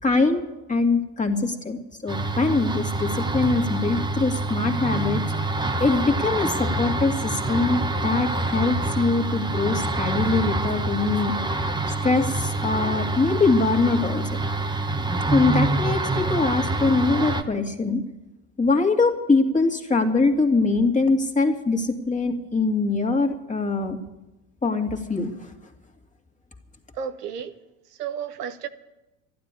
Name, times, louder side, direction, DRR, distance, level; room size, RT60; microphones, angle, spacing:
voice 1, 0.0-5.3 5.8-11.3 11.9-14.5 15.3-18.0 18.6-24.0 24.6-25.5, left 3 dB, 15° left, 2.4 m, -23 dB
sound 1, 2.1-17.4, right 2 dB, 10° right, 1.2 m, -26 dB
voice 2, 27.0-27.5 28.0-28.7, right 7 dB, 90° right, 1.1 m, -32 dB
12.5 x 12.0 x 9.8 m
hypercardioid pair, 80°, 46 cm